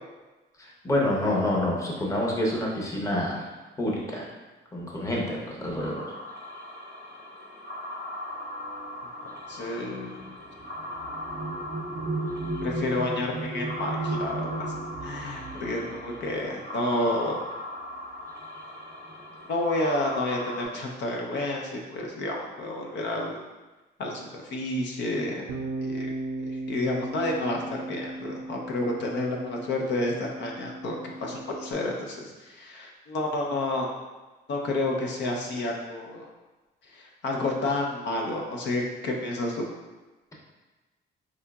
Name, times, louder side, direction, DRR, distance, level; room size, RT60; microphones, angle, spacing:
voice 1, 0.6-3.5 3.8-4.3 4.7-6.0, left 1 dB, 15° left, -2 dB, 0.7 m, -27 dB
sound 1, 5.8-20.7, left 1 dB, 40° left, 1.0 m, -39 dB
sound 2, 8.6-17.5 18.4-18.6 18.9-19.5, right 2 dB, 35° right, 0.5 m, -36 dB
voice 2, 9.5-10.3 12.6-14.7 15.0-17.4 19.4-23.4 24.0-25.4 25.8-26.1 26.5-33.9 34.5-36.3 36.9-39.7, left 2 dB, 75° left, 0 dB, 0.5 m, -30 dB
Bass guitar, 25.5-31.7, right 2 dB, 85° right, 0.4 m, -37 dB
4.8 x 2.7 x 2.3 m, 1.2 s
cardioid pair, 130°, 19 cm